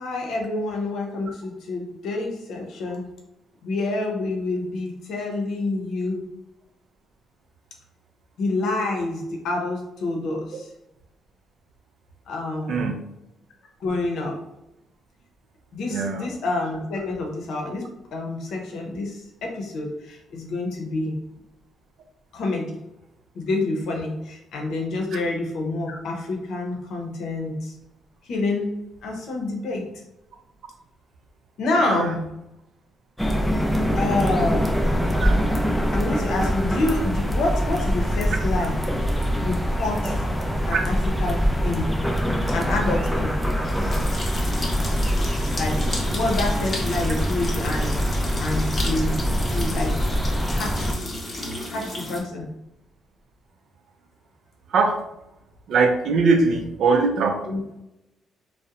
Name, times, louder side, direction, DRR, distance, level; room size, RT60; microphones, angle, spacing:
voice 1, 0.0-3.0 3.6-6.2 8.4-10.7 12.3-12.9 13.8-14.4 15.7-21.2 22.3-22.7 23.3-27.7 28.2-28.7 29.0-29.9 31.6-32.2 34.0-34.7 35.9-38.8 39.4-40.2 40.7-41.9 42.5-43.4 45.6-45.8 46.1-48.0 48.4-49.1 49.4-49.9 50.5-50.9 51.7-52.5 57.4-57.6, left 2 dB, 75° left, 1 dB, 0.6 m, -27 dB
voice 2, 15.9-16.3 25.1-25.2 31.9-32.0 35.2-35.3 40.7-40.8 54.7-55.0 55.7-57.4, right 4 dB, 70° right, 4 dB, 0.4 m, -21 dB
sound 1, 33.2-50.9, equal, 5° left, 0.4 m, -24 dB
sound 2, 39.2-52.2, left 1 dB, 35° left, 0.7 m, -34 dB
2.7 x 2.0 x 2.4 m, 0.89 s
cardioid pair, 90°, 0 cm